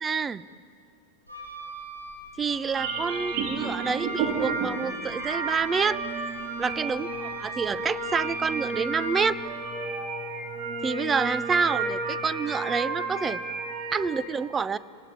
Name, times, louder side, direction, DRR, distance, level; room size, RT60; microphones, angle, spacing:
voice 1, 0.0-0.4 2.4-6.0 6.6-9.4 10.8-13.4 13.9-14.8, right 5 dB, 20° right, 16 dB, 0.8 m, -28 dB
Wind instrument woodwind instrument, 1.3-9.6, equal, 90° right, 4.1 m, -42 dB
sound 1, 2.7-14.2, right 4 dB, 40° right, 3.9 m, -31 dB
29.5 x 19.0 x 9.8 m, 2.5 s
figure-of-eight pair, 90°, 0 cm